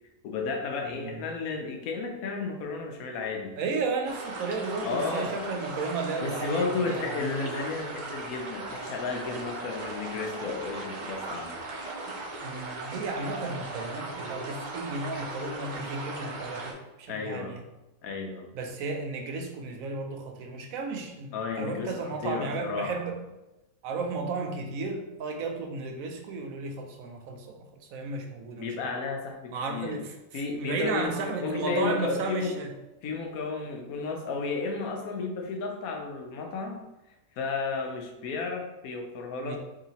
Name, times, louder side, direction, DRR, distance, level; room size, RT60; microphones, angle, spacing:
voice 1, 0.2-3.5 4.8-5.3 6.2-11.6 17.1-17.5 18.0-18.5 21.3-22.9 28.6-30.0 30.3-31.1 31.4-32.5 33.0-36.7 37.4-39.6, left 4 dB, 85° left, 2 dB, 1.1 m, -33 dB
voice 2, 0.9-1.2 3.6-7.3 12.1-17.6 18.5-23.2 23.8-27.6 27.9-28.7 29.5-32.7 39.4-39.6, right 3 dB, 80° right, 3 dB, 1.0 m, -34 dB
sound 1, 4.1-16.7, right 2 dB, 45° right, 0.6 m, -38 dB
sound 2, 31.0-33.6, left 2 dB, 20° left, 0.8 m, -42 dB
3.2 x 2.8 x 4.0 m, 0.98 s
omnidirectional pair, 1.5 m